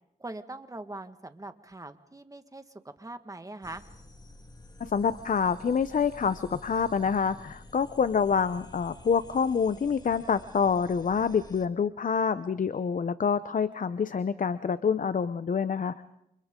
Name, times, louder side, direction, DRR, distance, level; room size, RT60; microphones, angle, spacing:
voice 1, 0.2-2.6 3.0-3.8, right 2 dB, 20° right, 8 dB, 1.7 m, -42 dB
sound 1, 3.6-11.7, left 2 dB, 25° left, 1.8 m, -50 dB
voice 2, 4.8-16.0, left 6 dB, 50° left, 13 dB, 0.7 m, -27 dB
29.5 x 28.0 x 3.8 m, 0.83 s
cardioid pair, 70°, 17 cm